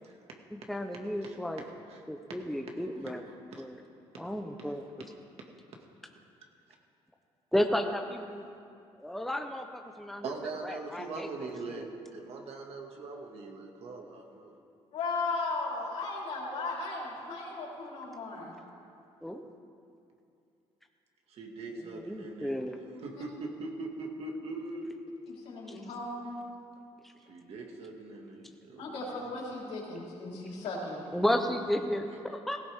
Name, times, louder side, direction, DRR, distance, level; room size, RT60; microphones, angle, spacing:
voice 1, 0.5-1.6 2.1-3.2 3.6-3.8 4.2-4.8 7.5-8.4 9.0-10.3 10.6-11.9 19.2-19.4 22.0-22.8 25.7-25.8 27.0-27.1 31.1-32.6, equal, ahead, 4 dB, 0.8 m, -33 dB
voice 2, 1.2-2.0 3.0-3.1 3.5-3.6 4.1-4.2 10.2-14.5 21.3-22.6 23.0-25.0 27.3-29.2, right 3 dB, 60° right, 1 dB, 2.1 m, -41 dB
voice 3, 14.9-18.6 23.1-23.2 25.3-26.3 28.8-31.0, left 3 dB, 75° left, -4 dB, 4.2 m, -36 dB
17.0 x 15.5 x 3.7 m, 2.5 s
cardioid pair, 95°, 11 cm